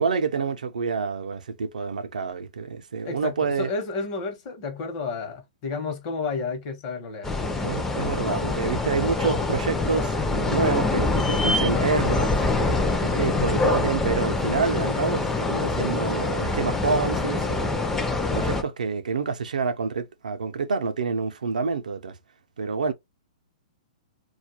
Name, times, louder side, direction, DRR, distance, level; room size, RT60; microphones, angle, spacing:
voice 1, 0.0-3.7 7.6-18.0 18.3-22.2 22.6-22.9, right 5 dB, 85° right, 0.5 m, -28 dB
voice 2, 3.0-7.7 13.2-13.7, left 4 dB, 40° left, 0.9 m, -32 dB
sound 1, 7.2-18.6, left 3 dB, 10° left, 0.4 m, -25 dB
2.3 x 2.2 x 2.8 m
hypercardioid pair, 130°, 4 cm